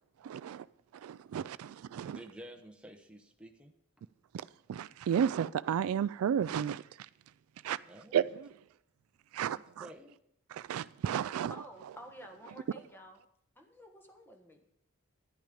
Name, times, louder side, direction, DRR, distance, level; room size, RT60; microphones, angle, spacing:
voice 1, 0.2-0.6 1.0-2.2 4.7-6.8 7.6-7.8 8.1-8.5 9.3-9.9 10.5-11.5, right 8 dB, 90° right, 0.3 m, -32 dB
voice 2, 2.0-3.7 4.9-5.0 7.9-8.4 9.4-10.2, right 1 dB, 5° right, 0.9 m, -51 dB
voice 3, 11.5-13.2 13.6-14.7, equal, 10° left, 1.4 m, -51 dB
10.5 x 10.5 x 5.1 m
head